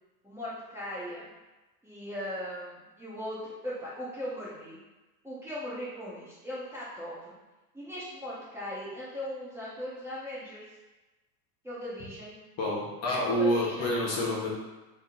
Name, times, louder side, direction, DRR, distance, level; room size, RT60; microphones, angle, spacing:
voice 1, 0.2-1.2 1.8-4.8 5.2-7.3 7.7-10.6 11.6-12.4 13.3-13.9, equal, 5° right, -9 dB, 0.8 m, -38 dB
voice 2, 12.6-14.5, left 1 dB, 35° left, -4 dB, 1.1 m, -28 dB
2.8 x 2.8 x 3.7 m, 1.1 s
supercardioid pair, 110°, 44 cm